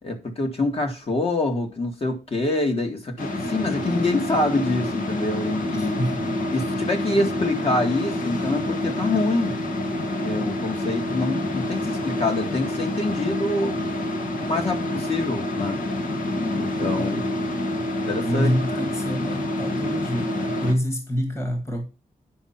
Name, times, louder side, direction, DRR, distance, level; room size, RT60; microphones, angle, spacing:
voice 1, 0.0-6.0 6.5-9.6 10.2-13.9 14.4-15.8 16.5-17.5 18.0-18.9, left 2 dB, 45° left, 2.1 m, -26 dB
sound 1, 3.2-20.7, left 1 dB, 70° left, 2.1 m, -27 dB
voice 2, 5.7-6.2 16.9-17.2 18.2-21.9, equal, 20° left, 1.8 m, -27 dB
9.9 x 5.7 x 5.8 m
wide cardioid pair, 160°, 14 cm